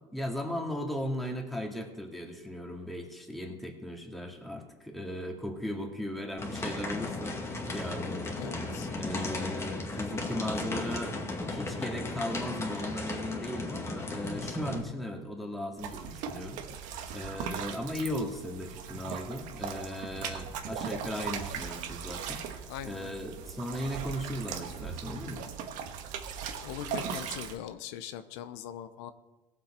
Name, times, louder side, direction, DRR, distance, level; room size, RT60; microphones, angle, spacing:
voice 1, 0.1-11.2 11.5-25.4, left 1 dB, ahead, 1 dB, 2.2 m, -37 dB
sound 1, 6.4-14.8, left 2 dB, 20° left, 2.0 m, -35 dB
voice 2, 8.4-8.9 22.7-23.1 26.6-29.1, left 11 dB, 80° left, 11 dB, 0.7 m, -41 dB
sound 2, 15.8-27.6, right 7 dB, 65° right, 1.3 m, -39 dB
17.5 x 7.6 x 4.4 m, 1.2 s
supercardioid pair, 100°, 14 cm